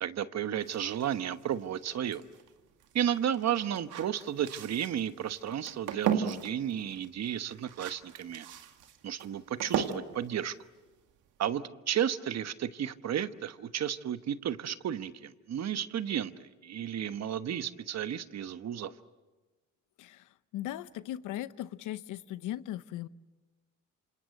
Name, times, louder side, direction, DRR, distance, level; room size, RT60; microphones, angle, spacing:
voice 1, 0.0-2.2 2.9-8.5 9.0-10.5 11.4-18.9, right 10 dB, 60° right, 12 dB, 1.2 m, -33 dB
sound 1, 0.6-11.5, right 8 dB, 85° right, 2.1 m, -38 dB
voice 2, 20.5-23.1, left 13 dB, 90° left, 15 dB, 0.8 m, -38 dB
27.5 x 27.0 x 8.0 m, 1.2 s
cardioid pair, 90°, 30 cm